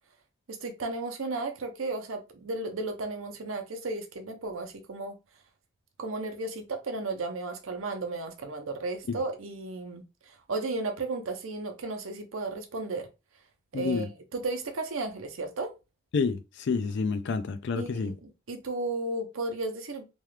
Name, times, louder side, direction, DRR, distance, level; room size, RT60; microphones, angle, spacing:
voice 1, 0.5-5.2 6.0-10.0 10.5-13.1 13.7-15.7 17.8-20.0, right 3 dB, 70° right, 0.7 m, -34 dB
voice 2, 13.7-14.1 16.1-18.1, left 4 dB, 55° left, 0.4 m, -29 dB
3.0 x 2.4 x 3.2 m
head